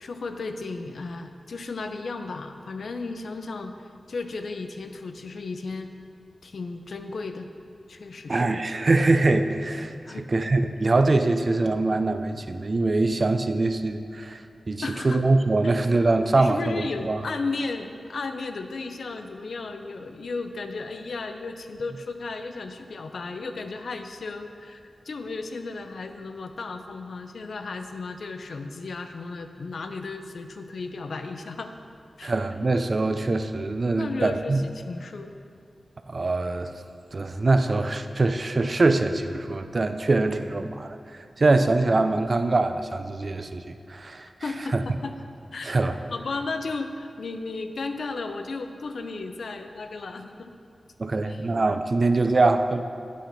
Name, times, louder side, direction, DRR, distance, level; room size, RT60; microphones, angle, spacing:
voice 1, 0.0-5.9 6.4-7.5 7.9-8.6 10.1-10.3 14.8-15.2 15.6-15.8 16.4-31.7 32.2-32.3 34.0-35.3 44.4-45.2 45.5-45.8 46.1-50.5 51.3-51.5, left 3 dB, 75° left, 7 dB, 0.5 m, -34 dB
voice 2, 8.3-17.2 32.2-34.6 36.1-36.7 37.1-41.0 41.4-44.3 44.7-44.8 45.6-46.0 51.0-52.8, right 2 dB, 50° right, 9 dB, 0.4 m, -23 dB
8.4 x 5.8 x 5.1 m, 2.5 s
cardioid pair, 65°, 0 cm